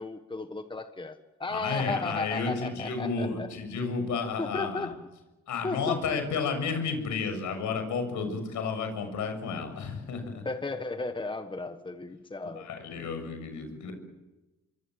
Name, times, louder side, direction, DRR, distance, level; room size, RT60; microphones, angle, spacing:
voice 1, 0.0-3.5 4.4-5.0 5.6-6.2 10.4-12.6, left 3 dB, 15° left, 8 dB, 1.4 m, -34 dB
voice 2, 1.5-4.9 5.5-10.4 12.6-13.9, left 5 dB, 75° left, 7 dB, 7.0 m, -32 dB
26.5 x 23.5 x 7.8 m, 1.1 s
cardioid pair, 90°, 30 cm